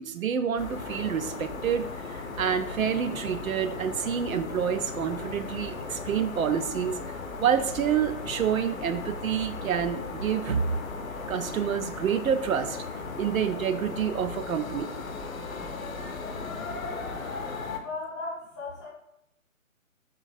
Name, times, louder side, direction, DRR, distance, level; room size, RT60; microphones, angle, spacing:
voice 1, 0.0-7.0 7.4-10.8 11.3-12.8 13.2-14.9, right 8 dB, 75° right, 10 dB, 0.5 m, -28 dB
sound 1, 0.6-17.8, left 4 dB, 75° left, 0.7 m, -37 dB
voice 2, 17.8-18.9, left 3 dB, 15° left, -7 dB, 0.5 m, -36 dB
3.9 x 2.5 x 3.9 m, 0.80 s
figure-of-eight pair, 135°, 41 cm